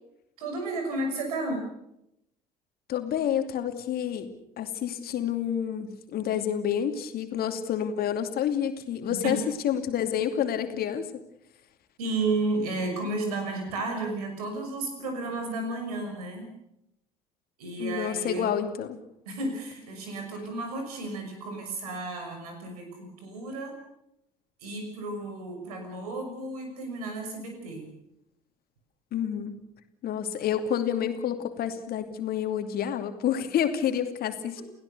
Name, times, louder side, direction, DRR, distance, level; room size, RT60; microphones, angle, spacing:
voice 1, 0.4-1.7 9.2-9.4 12.0-16.5 17.6-18.6 19.3-23.8 24.6-27.9 34.6-34.7, right 2 dB, 80° right, 5 dB, 6.1 m, -32 dB
voice 2, 2.9-4.3 4.6-9.4 9.6-11.1 17.8-19.0 29.1-29.6 30.0-34.6, left 9 dB, 55° left, 7 dB, 2.6 m, -29 dB
30.0 x 16.0 x 6.8 m, 0.81 s
figure-of-eight pair, 55°, 19 cm